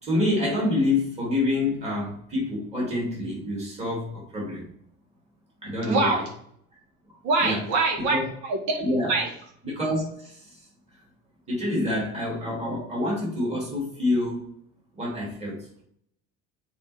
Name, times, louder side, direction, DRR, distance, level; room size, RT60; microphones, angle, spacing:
voice 1, 0.0-4.6 5.6-6.2 7.4-7.6 8.1-8.3 8.8-9.2 9.6-10.5 11.5-14.4 14.9-15.6, left 2 dB, 20° right, -4 dB, 2.9 m, -27 dB
voice 2, 5.8-6.2 7.2-8.2 8.5-9.3, right 3 dB, 70° right, 2 dB, 1.9 m, -24 dB
8.5 x 4.6 x 3.5 m, 0.68 s
cardioid pair, 155°, 29 cm